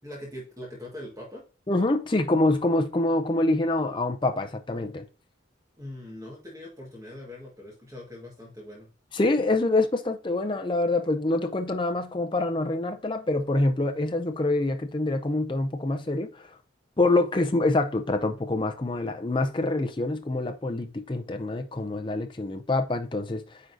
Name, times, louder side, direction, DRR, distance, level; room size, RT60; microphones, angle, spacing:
voice 1, 0.0-1.4 5.8-8.9, left 1 dB, 15° right, 1.6 m, -41 dB
voice 2, 1.7-5.0 9.1-16.6 17.0-23.6, left 2 dB, 25° left, 0.5 m, -26 dB
9.4 x 3.8 x 2.6 m
head